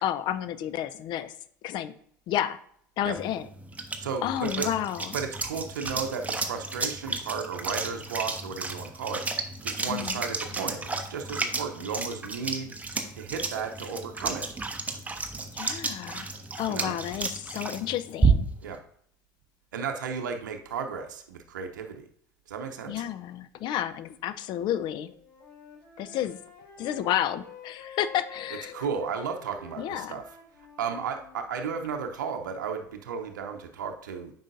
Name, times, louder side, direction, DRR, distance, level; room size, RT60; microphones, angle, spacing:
voice 1, 0.0-1.3 1.6-1.9 2.3-2.6 3.0-3.5 4.2-5.1 9.9-10.2 15.5-16.3 16.6-18.5 22.9-25.1 26.0-26.4 26.8-28.7 29.8-30.2, left 11 dB, 50° left, 13 dB, 0.5 m, -31 dB
sound 1, 3.2-18.7, right 4 dB, 15° right, 0.9 m, -32 dB
voice 2, 4.0-4.7 5.1-14.5 16.7-17.0 18.6-18.8 19.7-22.1 22.5-22.9 28.7-30.2 30.8-34.3, right 6 dB, 80° right, 5 dB, 0.7 m, -34 dB
Wind instrument woodwind instrument, 25.0-31.4, left 5 dB, 65° left, 3.0 m, -48 dB
8.9 x 5.5 x 2.6 m, 0.65 s
hypercardioid pair, 75°, 10 cm